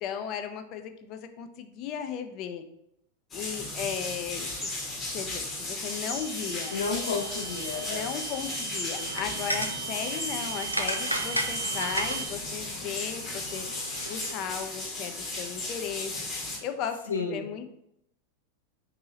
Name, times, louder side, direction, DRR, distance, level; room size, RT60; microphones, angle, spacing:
voice 1, 0.0-2.6 3.3-4.5 5.1-6.7 7.9-13.6 14.1-16.1 16.6-17.7, left 8 dB, 40° left, 8 dB, 0.4 m, -36 dB
sound 1, 3.3-16.6, left 2 dB, 20° left, 0.9 m, -35 dB
sound 2, 5.9-12.3, right 9 dB, 60° right, 1.0 m, -39 dB
voice 2, 6.4-8.1 17.1-17.4, left 4 dB, 70° left, 0 dB, 0.7 m, -32 dB
sound 3, 9.0-14.3, right 1 dB, 85° right, 0.4 m, -35 dB
2.7 x 2.7 x 3.9 m, 0.79 s
figure-of-eight pair, 90°, 0 cm